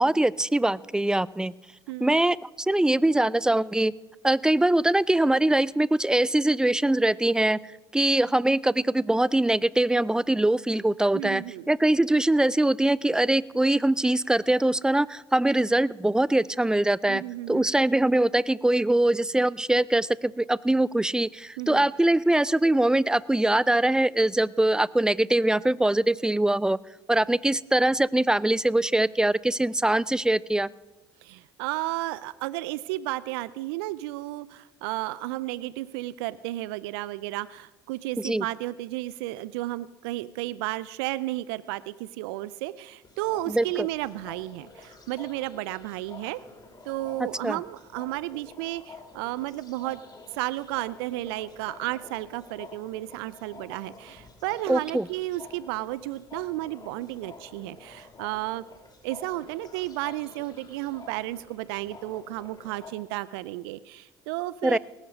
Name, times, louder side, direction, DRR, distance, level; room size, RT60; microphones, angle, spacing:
voice 1, 0.0-1.5 2.0-3.9 4.2-7.6 7.9-17.2 17.5-26.8 27.1-30.7 38.2-38.4 43.5-43.9 47.2-47.6 54.7-55.1 64.6-64.8, right 1 dB, 5° right, 22 dB, 0.4 m, -23 dB
voice 2, 1.9-2.2 11.1-11.7 17.1-17.7 21.6-21.9 31.2-46.4 46.8-50.0 50.3-58.6 59.0-64.8, right 17 dB, 70° right, 18 dB, 0.4 m, -33 dB
sound 1, 43.0-62.9, left 3 dB, 30° left, 2.6 m, -49 dB
18.5 x 10.0 x 5.2 m, 1.1 s
hypercardioid pair, 60°, 13 cm